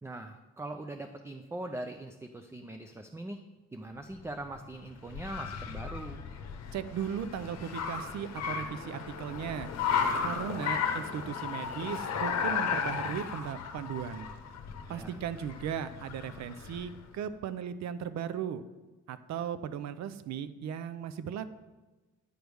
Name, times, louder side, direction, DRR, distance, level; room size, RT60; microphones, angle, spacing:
voice 1, 0.0-3.4 3.7-6.2 14.9-15.2, right 2 dB, 10° right, 6 dB, 0.4 m, -41 dB
Car, 4.1-17.0, left 6 dB, 60° left, 0.9 m, -35 dB
voice 2, 6.7-9.7 10.2-14.3 14.9-18.6 19.1-21.5, right 8 dB, 60° right, 13 dB, 0.6 m, -37 dB
9.4 x 3.4 x 6.2 m, 1.2 s
cardioid pair, 105°, 30 cm